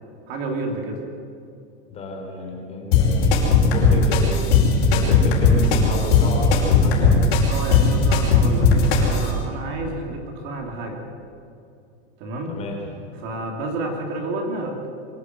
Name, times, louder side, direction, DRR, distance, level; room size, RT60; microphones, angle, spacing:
voice 1, 0.3-1.0 7.5-11.0 12.2-12.6 13.2-14.8, right 2 dB, 35° right, 2 dB, 2.9 m, -30 dB
voice 2, 1.9-7.2 12.5-13.0, left 2 dB, 20° left, 1 dB, 3.3 m, -31 dB
sound 1, 2.9-9.3, left 4 dB, 55° left, 5.5 m, -17 dB
23.5 x 12.0 x 9.5 m, 2.5 s
supercardioid pair, 170°, 34 cm